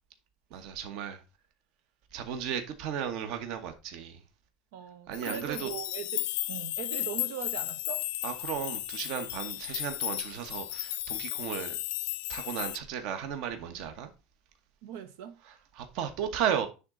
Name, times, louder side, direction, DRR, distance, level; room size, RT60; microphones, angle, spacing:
voice 1, 0.5-1.2 2.1-4.2 5.1-5.7 8.2-11.8 12.3-14.1 15.4-16.7, right 8 dB, 50° right, 1.0 m, -35 dB
voice 2, 4.7-8.1 14.8-15.4, right 9 dB, 80° right, 0.9 m, -40 dB
sound 1, 5.1-12.8, left 18 dB, 80° left, 0.4 m, -35 dB
9.6 x 3.7 x 3.8 m
cardioid pair, 180°, 0 cm